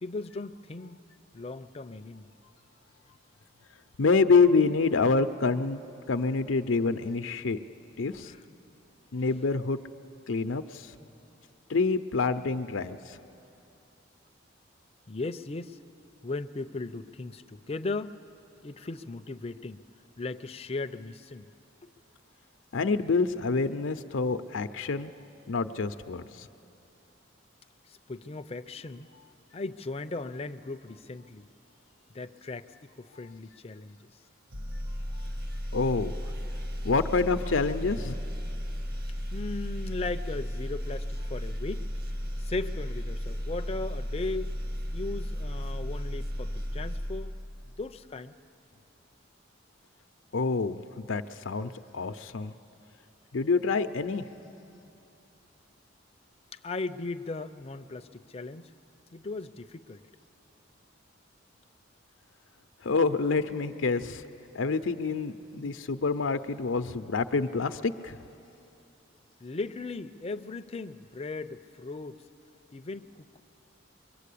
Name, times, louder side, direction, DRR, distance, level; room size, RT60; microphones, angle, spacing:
voice 1, 0.0-1.0 1.3-2.3 8.2-8.4 15.1-15.8 16.2-18.2 18.6-19.8 20.2-21.5 27.9-29.1 29.5-31.5 32.1-34.1 39.3-41.8 42.4-44.5 44.9-47.4 47.8-48.3 56.5-58.7 59.1-60.0 69.4-72.2 72.7-73.4, left 3 dB, 30° left, 8 dB, 0.5 m, -37 dB
voice 2, 4.0-5.8 6.1-7.6 8.0-8.3 9.1-9.8 10.3-10.9 11.7-13.2 22.7-25.1 25.5-26.5 35.7-36.2 36.8-38.2 50.3-52.5 53.3-54.3 62.8-64.2 64.5-68.2, left 4 dB, 85° left, 9 dB, 0.6 m, -27 dB
sound 1, 34.5-47.9, equal, 50° right, 1.5 m, -34 dB
23.0 x 22.5 x 8.4 m, 2.8 s
head